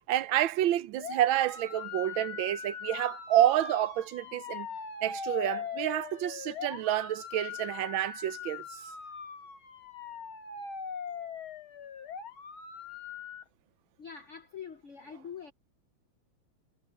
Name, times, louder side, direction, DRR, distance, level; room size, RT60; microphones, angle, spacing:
voice 1, 0.1-4.7 5.0-8.8, right 12 dB, 75° right, 1.5 m, -29 dB
sound 1, 1.0-13.4, left 6 dB, 80° left, 3.1 m, -41 dB
voice 2, 14.0-15.5, left 7 dB, 65° left, 0.7 m, -44 dB
omnidirectional pair, 2.2 m